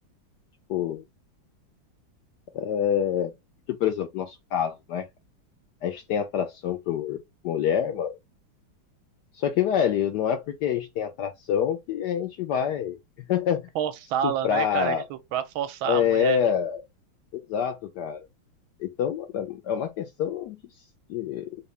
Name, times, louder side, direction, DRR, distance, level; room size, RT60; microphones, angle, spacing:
voice 1, 0.7-1.0 2.5-3.3 3.7-5.1 5.8-8.2 9.3-13.0 13.3-13.7 14.2-15.1 15.9-16.8 17.3-18.3 18.8-20.6 21.1-21.6, left 8 dB, 75° left, 1.0 m, -26 dB
voice 2, 13.7-16.4, right 9 dB, 85° right, 1.4 m, -29 dB
3.9 x 2.7 x 3.2 m
omnidirectional pair, 2.3 m